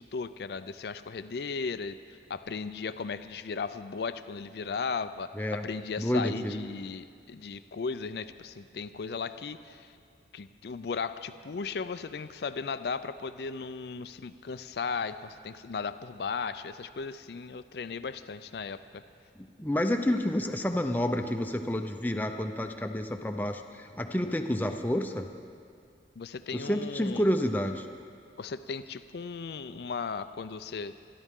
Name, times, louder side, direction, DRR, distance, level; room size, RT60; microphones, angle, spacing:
voice 1, 0.0-2.0 2.3-9.9 10.3-19.0 26.2-27.3 28.4-30.9, left 5 dB, 60° left, 12 dB, 0.4 m, -36 dB
voice 2, 5.3-5.7 6.0-6.6 19.4-25.2 26.5-27.9, left 1 dB, 10° left, 5 dB, 0.6 m, -29 dB
28.5 x 11.0 x 3.7 m, 2.2 s
head